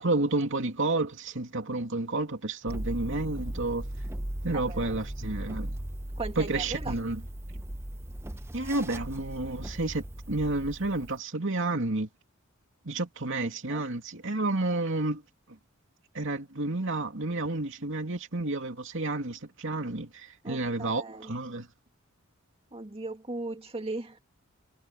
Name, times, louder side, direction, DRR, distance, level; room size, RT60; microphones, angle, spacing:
voice 1, 0.0-3.9 4.4-5.7 6.4-7.2 8.5-12.1 12.8-15.2 16.1-21.7, right 2 dB, 60° right, 2.7 m, -30 dB
sound 1, 2.7-11.2, right 1 dB, 10° right, 0.6 m, -37 dB
voice 2, 4.5-5.0 6.2-7.0 13.4-13.9 20.4-21.3 22.7-24.2, right 2 dB, 30° right, 2.0 m, -38 dB
head